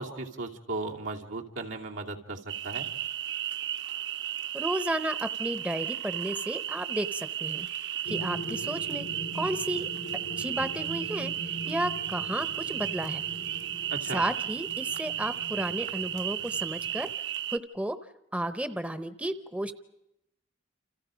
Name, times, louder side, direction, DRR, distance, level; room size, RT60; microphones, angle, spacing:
voice 1, 0.0-2.4 2.6-2.9 13.9-14.2, right 2 dB, 90° right, 0 dB, 2.8 m, -36 dB
sound 1, 2.5-17.6, right 11 dB, 65° right, 1.3 m, -34 dB
voice 2, 4.5-7.7 8.1-9.1 9.3-9.9 10.4-13.2 14.1-17.1 17.5-18.0 18.3-19.7, right 1 dB, 5° right, 11 dB, 0.8 m, -33 dB
sound 2, 8.1-17.1, equal, 85° left, 1.8 m, -42 dB
29.5 x 27.5 x 5.1 m, 0.82 s
head